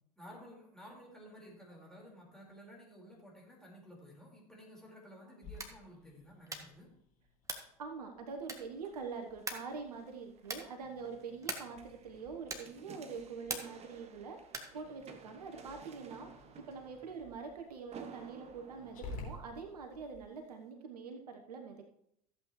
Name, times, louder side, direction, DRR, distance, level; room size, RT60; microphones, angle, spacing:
voice 1, 0.2-6.9, equal, 5° left, -2 dB, 4.6 m, -54 dB
Growling, 5.4-20.2, left 2 dB, 45° left, 3.6 m, -55 dB
sound 1, 5.5-5.9 6.4-6.8 7.4-7.8 8.4-8.8 9.4-9.8 10.4-10.8 11.4-11.8 12.5-12.8 13.5-13.9 14.5-14.8, right 3 dB, 15° right, 1.7 m, -42 dB
voice 2, 7.8-14.4 14.7-16.3 16.6-21.8, right 5 dB, 75° right, 5 dB, 1.2 m, -45 dB
sound 2, 8.7-20.0 20.5-20.6, right 6 dB, 30° right, 1.1 m, -56 dB
14.5 x 8.2 x 3.2 m, 0.74 s
figure-of-eight pair, 75°, 20 cm